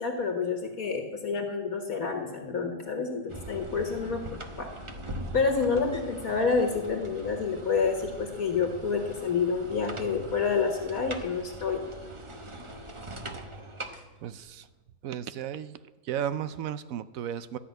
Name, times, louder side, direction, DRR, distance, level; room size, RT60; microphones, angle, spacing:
voice 1, 0.0-4.7 5.3-11.8, left 5 dB, 60° left, 4 dB, 1.8 m, -28 dB
sound 1, 3.3-14.7, right 1 dB, 25° right, 0.7 m, -42 dB
voice 2, 14.2-14.7 15.0-15.8 16.0-17.6, right 9 dB, 70° right, 14 dB, 0.9 m, -34 dB
13.0 x 6.0 x 9.2 m, 1.2 s
omnidirectional pair, 1.8 m